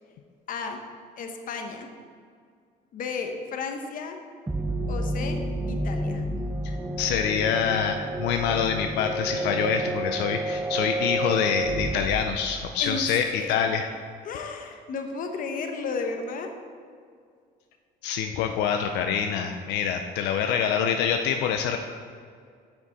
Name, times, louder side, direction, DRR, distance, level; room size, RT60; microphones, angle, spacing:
voice 1, 0.5-0.8 1.2-1.9 2.9-4.2 4.9-5.4 5.7-6.2 12.8-13.1 13.3-13.5 14.2-16.5, left 4 dB, 55° left, 5 dB, 0.9 m, -33 dB
sound 1, 4.5-13.1, right 1 dB, 10° right, 0.5 m, -30 dB
voice 2, 6.6-13.9 18.0-21.8, left 7 dB, 90° left, 5 dB, 0.5 m, -26 dB
8.2 x 6.1 x 4.1 m, 2.1 s
cardioid pair, 110°, 17 cm